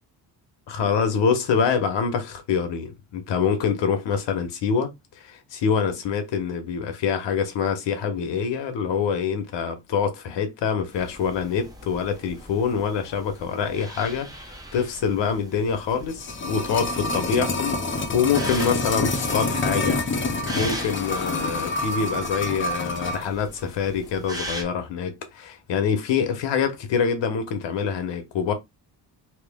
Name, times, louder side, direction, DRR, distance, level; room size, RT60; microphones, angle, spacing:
voice 1, 0.7-4.9 5.2-17.8 18.1-28.5, left 6 dB, 80° left, 1.2 m, -25 dB
sound 1, 10.9-24.6, right 1 dB, 10° right, 1.0 m, -40 dB
sound 2, 15.9-23.3 23.6-23.7, left 2 dB, 25° left, 0.9 m, -27 dB
3.1 x 3.1 x 3.6 m
cardioid pair, 120°, 43 cm